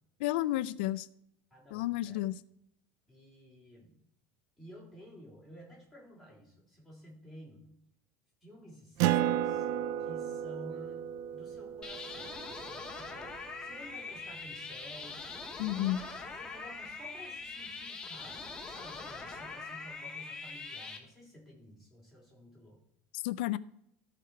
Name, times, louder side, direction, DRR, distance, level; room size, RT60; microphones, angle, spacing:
voice 1, 0.2-1.1 1.7-2.4 15.6-16.0 23.1-23.6, left 15 dB, 80° left, 0.4 m, -31 dB
voice 2, 1.5-2.2 3.1-4.0 4.6-7.6 8.4-9.7 10.0-15.2 15.5-22.8, equal, 5° right, 3.7 m, -53 dB
Acoustic guitar, 9.0-14.0, right 12 dB, 55° right, 0.3 m, -34 dB
sound 1, 11.8-21.0, left 4 dB, 15° left, 1.3 m, -43 dB
14.5 x 4.8 x 4.5 m
supercardioid pair, 145°, 5 cm